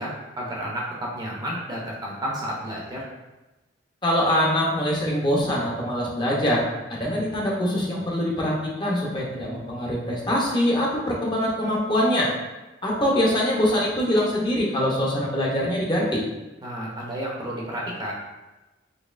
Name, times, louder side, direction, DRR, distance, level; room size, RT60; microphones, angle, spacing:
voice 1, 0.0-3.0 16.6-18.1, equal, 20° right, -3 dB, 0.6 m, -31 dB
voice 2, 4.0-12.3 12.8-16.2, equal, 25° left, -3 dB, 0.6 m, -23 dB
4.0 x 2.9 x 2.4 m, 1.1 s
head